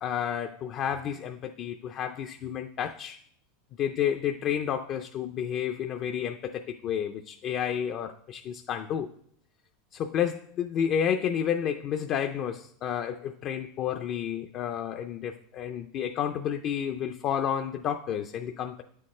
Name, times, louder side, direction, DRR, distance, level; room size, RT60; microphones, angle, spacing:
voice 1, 0.0-3.2 3.8-9.1 9.9-18.8, left 9 dB, 35° left, 0.4 m, -31 dB
9.3 x 6.4 x 3.2 m
supercardioid pair, 150°, 0 cm